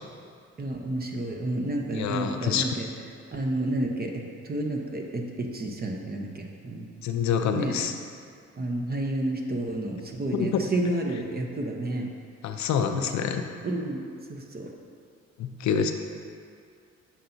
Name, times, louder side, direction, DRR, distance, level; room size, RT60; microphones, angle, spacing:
voice 1, 0.6-2.9 3.3-6.9 7.5-7.7 8.6-12.1 12.9-13.1 13.6-14.0 14.3-14.7, right 1 dB, 30° right, 2 dB, 0.8 m, -30 dB
voice 2, 1.9-2.7 7.0-7.9 10.3-10.6 12.4-13.4 15.4-15.9, left 7 dB, 65° left, 6 dB, 0.5 m, -26 dB
7.3 x 5.8 x 2.7 m, 2.3 s
cardioid pair, 70°, 30 cm